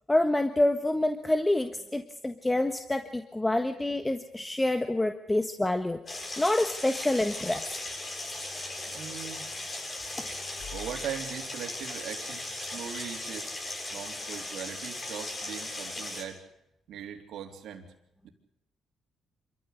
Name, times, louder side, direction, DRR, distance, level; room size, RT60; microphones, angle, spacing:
voice 1, 0.1-7.6, left 1 dB, 15° left, 7 dB, 1.5 m, -27 dB
sound 1, 6.1-16.2, left 2 dB, 35° left, 7.8 m, -38 dB
voice 2, 8.9-9.5 10.2-10.3 10.7-13.5 13.9-16.4 16.9-17.9 18.2-18.3, right 9 dB, 75° right, 3 dB, 3.6 m, -40 dB
sound 2, 9.8-11.5, left 5 dB, 70° left, 6.4 m, -48 dB
27.0 x 14.5 x 8.4 m, 0.81 s
cardioid pair, 90°, 0 cm